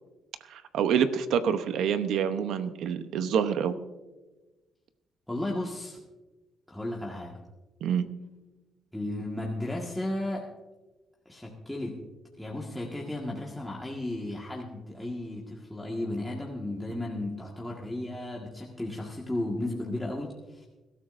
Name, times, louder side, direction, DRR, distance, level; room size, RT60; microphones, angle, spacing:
voice 1, 0.5-3.7 7.8-8.1, right 8 dB, 80° right, 10 dB, 0.9 m, -27 dB
voice 2, 5.3-6.0 6.7-7.4 8.9-10.5 11.3-12.0 12.4-20.7, left 1 dB, 5° left, -3 dB, 1.7 m, -34 dB
21.5 x 13.0 x 2.6 m, 1.1 s
cardioid pair, 90°, 0 cm